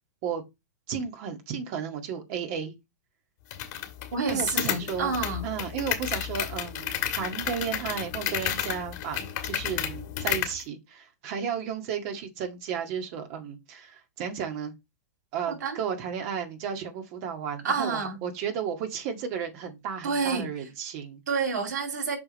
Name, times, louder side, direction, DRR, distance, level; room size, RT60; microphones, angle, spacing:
voice 1, 0.9-2.7 4.3-5.1 5.4-14.7 15.3-21.2, right 7 dB, 50° right, 1.8 m, -33 dB
sound 1, 3.5-10.6, left 11 dB, 45° left, 1.7 m, -32 dB
voice 2, 4.1-5.4 15.5-15.8 17.6-18.2 20.0-20.5 21.3-22.2, right 5 dB, 85° right, 2.8 m, -28 dB
6.1 x 5.2 x 3.1 m
hypercardioid pair, 125°, 9 cm